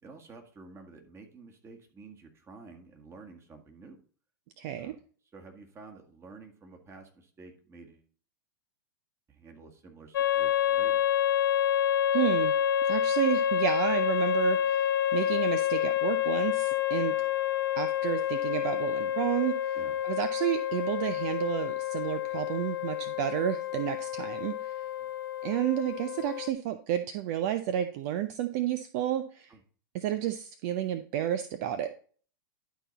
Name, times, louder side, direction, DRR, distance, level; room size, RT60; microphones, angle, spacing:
voice 1, 0.0-4.0 4.8-5.0 5.3-8.1 9.3-11.0 19.7-20.0 25.0-25.1 29.5-29.6, right 4 dB, 20° right, 3 dB, 1.8 m, -50 dB
voice 2, 4.6-5.0 12.1-12.6 12.9-17.2 17.8-19.8 20.0-24.7 25.4-29.5 29.9-31.9, right 11 dB, 50° right, 10 dB, 0.6 m, -31 dB
sound 1, 10.1-26.5, left 10 dB, 75° left, 0.5 m, -28 dB
11.5 x 4.1 x 4.0 m, 0.43 s
hypercardioid pair, 100°, 12 cm